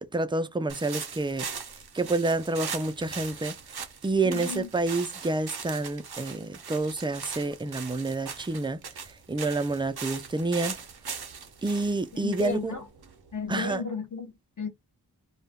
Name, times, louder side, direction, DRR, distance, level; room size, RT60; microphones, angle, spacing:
voice 1, 0.1-1.5 1.9-3.5 4.0-8.8 9.3-10.8 11.6-12.7 13.5-13.8, right 2 dB, 15° right, 0.3 m, -28 dB
sound 1, 0.7-13.5, right 6 dB, 75° right, 0.6 m, -40 dB
voice 2, 4.2-4.7 12.2-12.8 13.3-14.7, left 4 dB, 50° left, 1.1 m, -34 dB
2.2 x 2.2 x 3.4 m
wide cardioid pair, 50°, 38 cm